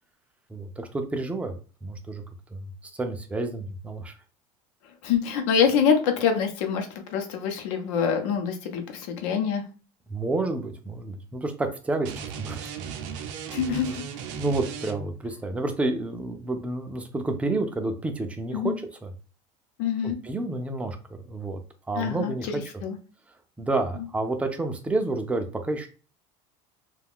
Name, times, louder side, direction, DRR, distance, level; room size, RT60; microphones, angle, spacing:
voice 1, 0.5-1.5 1.8-2.2 2.5-2.7 3.0-4.1 10.1-12.7 14.3-18.7 19.0-19.1 20.0-21.6 21.9-22.6 23.6-25.9, right 2 dB, 10° right, 5 dB, 0.3 m, -29 dB
voice 2, 5.0-9.6 13.5-14.0 18.5-18.8 19.8-20.2 22.0-22.3 22.8-23.0, left 7 dB, 85° left, 5 dB, 0.7 m, -25 dB
sound 1, 12.0-15.3, right 7 dB, 85° right, 0.5 m, -36 dB
2.4 x 2.3 x 3.5 m, 0.36 s
cardioid pair, 155°, 16 cm